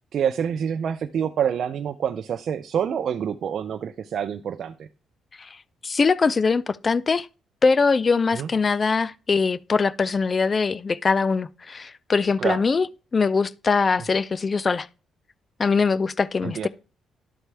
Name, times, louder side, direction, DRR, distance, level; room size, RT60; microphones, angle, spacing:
voice 1, 0.1-4.7 8.3-8.5 12.4-12.6 16.4-16.7, right 8 dB, 60° right, 0.5 m, -27 dB
voice 2, 5.8-7.3 7.6-12.9 13.1-14.9 15.6-16.7, left 4 dB, 35° left, 0.4 m, -22 dB
12.0 x 4.1 x 3.4 m
cardioid pair, 90°, 0 cm